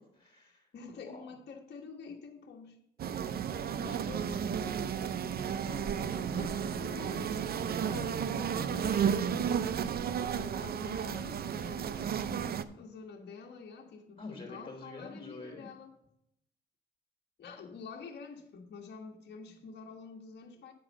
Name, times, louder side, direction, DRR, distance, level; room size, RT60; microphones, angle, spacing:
voice 1, 0.0-0.7 1.0-1.3 3.8-5.2 5.9-6.7 12.0-12.4 14.2-15.7, left 2 dB, 25° left, 3.3 m, -48 dB
voice 2, 0.7-2.8 5.6-7.4 7.7-9.8 10.0-12.0 12.7-15.9 17.4-20.7, left 5 dB, 60° left, 1.5 m, -47 dB
sound 1, 3.0-12.6, right 8 dB, 50° right, 0.6 m, -33 dB
9.0 x 4.9 x 6.3 m
cardioid pair, 90°, 20 cm